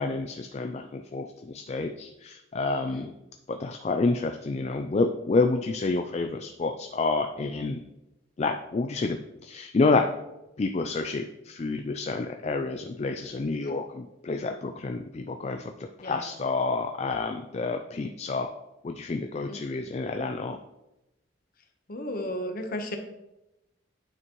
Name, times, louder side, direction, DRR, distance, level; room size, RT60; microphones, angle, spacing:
voice 1, 0.0-3.1 3.5-7.8 8.4-9.2 9.4-10.1 10.6-18.5 18.8-20.6, left 3 dB, 35° left, 5 dB, 0.4 m, -29 dB
voice 2, 21.9-23.0, left 1 dB, 50° left, 5 dB, 1.0 m, -34 dB
9.1 x 6.1 x 3.1 m, 0.93 s
head